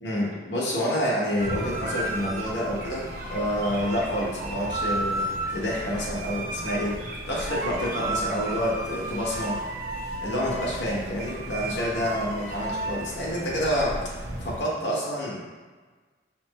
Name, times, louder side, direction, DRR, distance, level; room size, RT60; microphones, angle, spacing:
voice 1, 0.0-7.0 7.3-9.6 10.2-14.1 14.4-15.4, equal, 85° left, -4 dB, 1.2 m, -28 dB
sound 1, 1.4-14.6, right 1 dB, 50° right, 0.7 m, -33 dB
5.8 x 2.1 x 4.1 m, 1.4 s
head